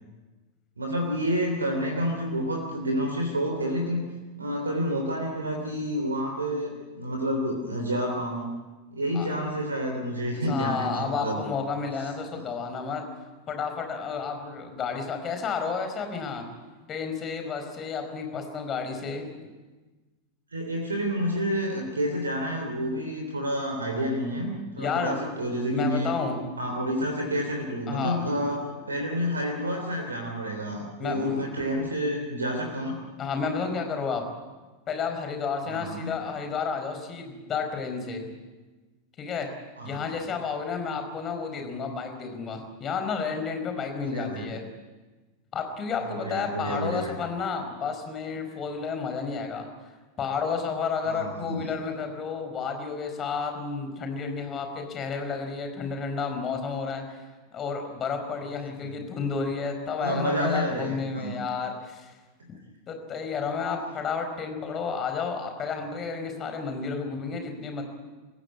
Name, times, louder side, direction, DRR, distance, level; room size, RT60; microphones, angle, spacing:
voice 1, 0.8-4.0 4.4-8.5 8.9-11.4 12.3-12.4 20.5-26.2 26.6-33.0 35.7-36.1 39.8-40.0 44.0-44.5 46.0-47.1 51.0-51.7 58.8-59.0 60.0-61.4, equal, 75° right, 2 dB, 3.3 m, -29 dB
voice 2, 10.3-13.0 13.5-16.5 16.9-19.3 24.8-25.2 25.7-26.5 27.0-27.1 27.9-28.5 28.9-29.0 31.0-31.5 33.2-34.2 34.9-38.3 39.2-39.5 39.8-44.6 45.5-49.7 50.2-57.2 57.5-62.1 62.5-62.6 62.9-67.8, left 5 dB, 25° left, 5 dB, 4.8 m, -31 dB
26.5 x 15.5 x 9.6 m, 1.3 s
figure-of-eight pair, 90°, 0 cm